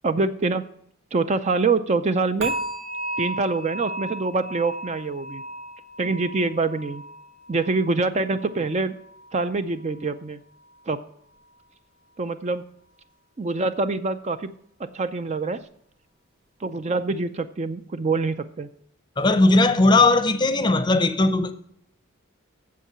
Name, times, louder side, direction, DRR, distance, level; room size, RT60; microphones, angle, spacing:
voice 1, 0.0-0.6 1.1-2.5 3.2-5.4 6.0-7.0 7.5-8.9 9.3-10.4 10.9-11.0 12.2-12.6 13.4-14.5 14.8-15.6 16.6-18.7, right 3 dB, 30° right, 0.4 m, -25 dB
sound 1, 2.4-9.5 9.8-10.2 10.7-10.8, right 1 dB, 65° right, 1.9 m, -35 dB
voice 2, 19.2-21.5, left 2 dB, 20° left, 0.6 m, -18 dB
8.3 x 7.4 x 7.3 m
head